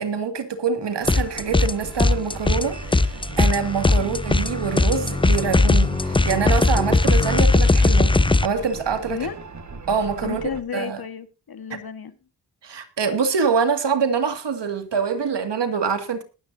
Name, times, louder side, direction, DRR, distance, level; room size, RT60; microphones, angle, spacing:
voice 1, 0.0-9.2 9.9-10.4 10.7-11.0 11.7-11.8 12.6-16.2, right 6 dB, 70° right, 2.2 m, -25 dB
sound 1, 1.0-10.6, right 3 dB, 40° right, 1.6 m, -38 dB
sound 2, 1.1-1.7 2.0-8.5, left 2 dB, 10° left, 0.5 m, -19 dB
voice 2, 9.1-9.4 10.2-12.1, left 7 dB, 55° left, 1.5 m, -32 dB
21.0 x 9.4 x 2.7 m
wide cardioid pair, 100°, 44 cm